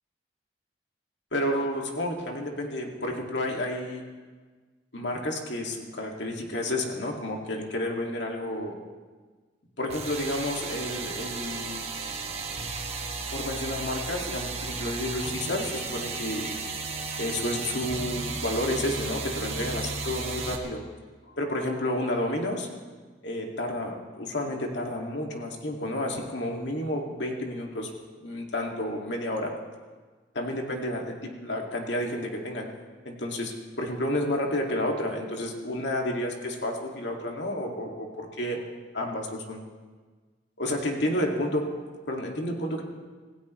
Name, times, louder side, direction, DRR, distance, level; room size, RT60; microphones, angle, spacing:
voice 1, 1.3-4.0 4.9-8.7 9.8-11.8 13.3-16.6 17.2-20.8 21.4-22.7 23.2-27.9 28.2-29.5 30.3-32.7 33.1-38.6 38.9-39.6 40.6-41.8 42.1-42.8, left 1 dB, 75° left, 0 dB, 2.2 m, -30 dB
sound 1, 9.9-20.6, right 4 dB, 35° right, 1.5 m, -34 dB
26.5 x 16.0 x 3.2 m, 1.4 s
head